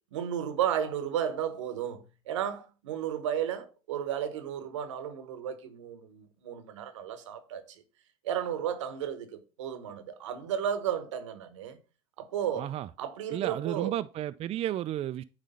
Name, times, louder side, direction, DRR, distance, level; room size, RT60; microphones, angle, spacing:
voice 1, 0.1-7.6 8.2-11.8 12.2-12.7 13.0-13.9, right 9 dB, 85° right, 1.0 m, -33 dB
voice 2, 12.6-12.9 13.3-15.2, right 12 dB, 40° right, 0.4 m, -32 dB
9.1 x 3.2 x 5.3 m
hypercardioid pair, 80°, 15 cm